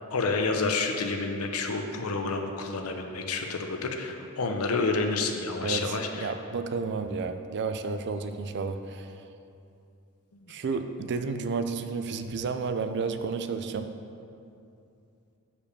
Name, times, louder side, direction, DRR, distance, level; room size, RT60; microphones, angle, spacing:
voice 1, 0.1-6.3 10.4-10.5, left 3 dB, 75° left, 4 dB, 0.7 m, -29 dB
voice 2, 5.6-9.2 10.5-13.9, right 4 dB, 50° right, 9 dB, 0.4 m, -31 dB
7.0 x 5.2 x 6.6 m, 2.6 s
head